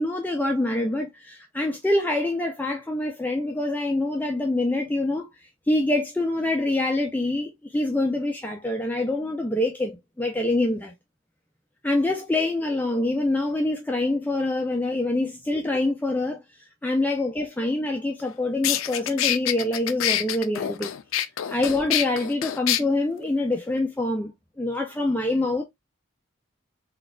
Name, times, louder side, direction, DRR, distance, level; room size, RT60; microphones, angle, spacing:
voice 1, 0.0-5.3 5.7-10.9 11.8-16.4 16.8-20.9 21.5-25.6, left 2 dB, 10° left, 0.3 m, -25 dB
sound 1, 18.2-18.3 18.6-22.8, left 11 dB, 80° left, 0.4 m, -26 dB
3.9 x 2.3 x 2.2 m
head